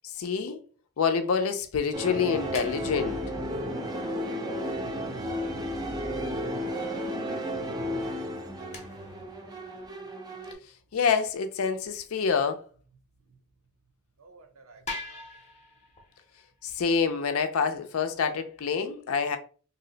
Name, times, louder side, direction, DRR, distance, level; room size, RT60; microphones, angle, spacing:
voice 1, 0.2-0.6 1.0-3.2 10.9-12.6 16.6-19.4, left 6 dB, 70° left, 0.4 m, -27 dB
sound 1, 1.9-10.5, equal, 20° right, 0.5 m, -33 dB
sound 2, 2.5-4.9 5.3-5.4 5.8-5.9 6.5-6.6 7.0-7.1 8.1-8.2 8.7-10.0 10.9-11.0 11.5-11.6 12.0-12.4 13.1-13.3 13.6-13.7 14.3-14.4 14.8-18.2, left 2 dB, 30° left, 0.7 m, -45 dB
voice 2, 8.2-9.0 9.4-9.5 14.2-15.3, right 3 dB, 75° right, 0.6 m, -56 dB
2.7 x 2.1 x 3.8 m
head